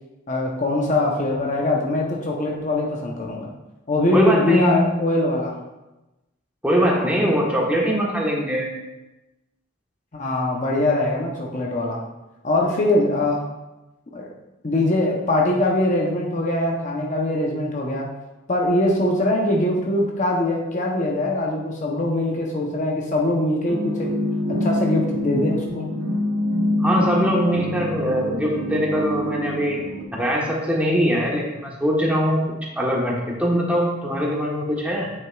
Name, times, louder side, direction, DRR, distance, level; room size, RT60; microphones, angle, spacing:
voice 1, 0.3-3.5 3.9-5.6 10.1-12.0 12.4-13.5 14.1-14.3 14.6-18.1 18.5-24.1 24.5-25.9, left 1 dB, 35° left, -1 dB, 0.8 m, -22 dB
voice 2, 4.1-4.9 6.6-8.7 26.8-29.8 30.1-32.4 32.8-33.1 33.4-35.1, equal, 5° right, -3 dB, 1.2 m, -22 dB
sound 1, 23.7-30.0, left 1 dB, 80° right, 1.0 m, -25 dB
8.7 x 6.4 x 2.4 m, 1.0 s
head